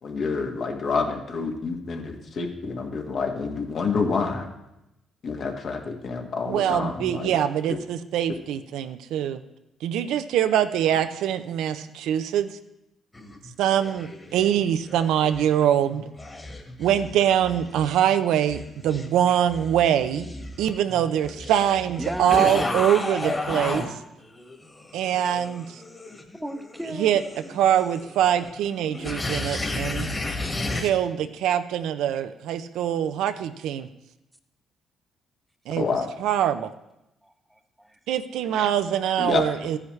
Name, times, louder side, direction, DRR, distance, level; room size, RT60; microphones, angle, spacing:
voice 1, 0.0-4.5 5.2-7.4 7.7-7.8 35.8-36.1 39.2-39.4, left 4 dB, 60° left, 3 dB, 1.5 m, -28 dB
voice 2, 6.5-9.4 9.8-12.5 13.6-16.0 16.8-20.3 20.6-24.0 24.9-25.8 27.0-27.2 27.5-30.1 30.7-33.9 35.7-36.7 38.1-39.8, right 10 dB, 85° right, 10 dB, 0.5 m, -23 dB
sound 1, 13.1-15.5 15.8-23.9 24.3-30.9, left 2 dB, 25° left, 1.7 m, -33 dB
voice 3, 22.0-22.9 26.3-27.2 37.2-37.9, equal, 5° right, 8 dB, 0.8 m, -35 dB
13.5 x 9.7 x 3.2 m, 0.90 s
cardioid pair, 90°, 0 cm